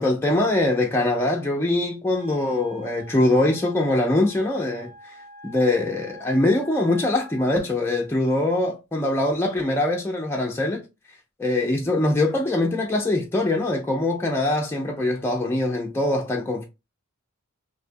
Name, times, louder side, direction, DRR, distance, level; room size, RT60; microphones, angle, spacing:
voice 1, 0.0-5.1 5.4-10.8 11.4-16.6, left 2 dB, 10° left, 0.3 m, -23 dB
Wind instrument woodwind instrument, 2.1-7.5, equal, 45° right, 1.0 m, -46 dB
2.6 x 2.3 x 2.5 m
head